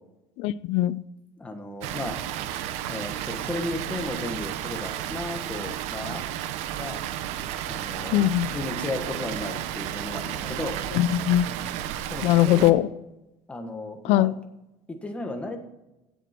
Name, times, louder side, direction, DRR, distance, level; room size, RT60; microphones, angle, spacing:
voice 1, 0.4-1.0 8.1-8.5 10.9-11.5 12.2-12.8 14.0-14.4, left 14 dB, 60° left, 0.5 m, -21 dB
voice 2, 1.4-2.2 2.9-6.2 6.7-7.1 7.6-10.8 12.1-12.8 13.5-14.3 14.9-15.6, left 2 dB, 10° left, 1.5 m, -34 dB
Water, 1.8-12.7, right 11 dB, 65° right, 0.8 m, -33 dB
16.5 x 8.2 x 4.4 m
cardioid pair, 175°, 12 cm